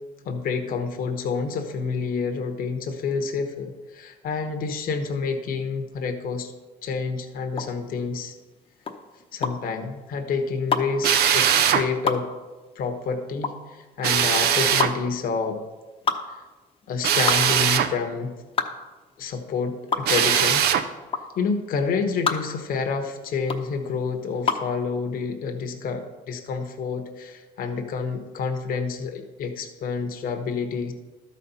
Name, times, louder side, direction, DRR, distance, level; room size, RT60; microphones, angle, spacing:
voice 1, 0.2-6.5 6.8-8.3 9.3-12.3 12.7-15.6 16.3-16.4 16.9-18.3 19.2-20.7 21.4-30.9, left 5 dB, 60° left, 5 dB, 1.1 m, -28 dB
sound 1, 7.5-24.8, left 5 dB, 35° left, 0.9 m, -30 dB
Drill, 11.0-11.9 14.0-14.9 17.0-17.9 20.0-20.9, right 9 dB, 70° right, 0.7 m, -20 dB
12.5 x 4.3 x 5.6 m, 1.3 s
cardioid pair, 110°, 17 cm